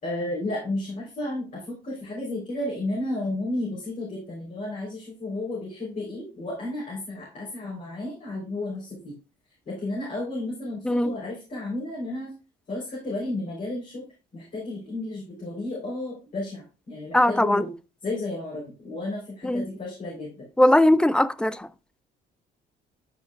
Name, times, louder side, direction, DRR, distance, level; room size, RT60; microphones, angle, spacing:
voice 1, 0.0-9.1 9.7-12.3 12.7-14.1 14.3-17.7 18.0-20.5, left 2 dB, 40° left, 3.6 m, -32 dB
voice 2, 10.8-11.2 17.1-17.6 19.4-19.6 20.6-21.7, left 1 dB, 5° left, 0.3 m, -20 dB
9.9 x 4.9 x 2.3 m
cardioid pair, 100°, 18 cm